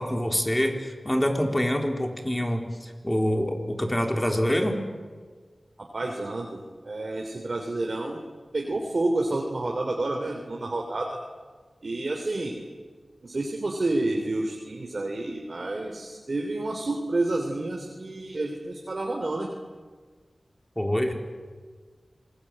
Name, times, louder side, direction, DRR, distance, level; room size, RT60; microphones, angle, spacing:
voice 1, 0.0-4.8 20.8-21.1, equal, 15° left, 3 dB, 3.9 m, -26 dB
voice 2, 5.9-8.2 8.5-11.2 11.8-12.6 13.2-19.5, right 2 dB, 55° right, 1 dB, 3.3 m, -29 dB
26.5 x 20.5 x 9.0 m, 1.5 s
wide cardioid pair, 60°, 0 cm